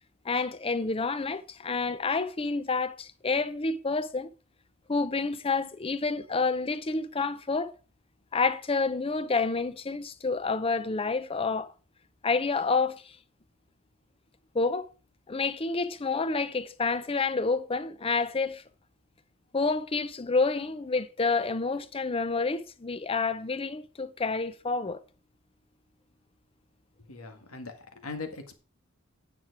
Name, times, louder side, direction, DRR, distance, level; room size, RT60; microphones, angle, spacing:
voice 1, 0.2-4.3 4.9-7.7 8.3-11.7 12.2-13.1 14.5-14.9 15.3-18.6 19.5-25.0, left 4 dB, 25° left, 0.6 m, -29 dB
voice 2, 27.1-28.5, left 3 dB, 90° left, 1.9 m, -40 dB
9.6 x 7.4 x 4.7 m
head